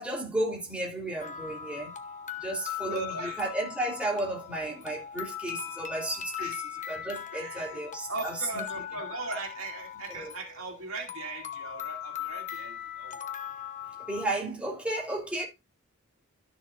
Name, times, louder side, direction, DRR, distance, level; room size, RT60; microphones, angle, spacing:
voice 1, 0.0-1.9 2.4-6.5 6.9-8.6 10.1-10.3 14.0-15.5, right 1 dB, 5° right, 3.1 m, -33 dB
sound 1, 1.2-14.2, left 10 dB, 40° left, 1.0 m, -39 dB
voice 2, 2.8-3.4 6.4-6.6 7.3-7.8 8.1-13.3, right 3 dB, 90° right, 2.5 m, -39 dB
12.5 x 6.8 x 2.6 m
head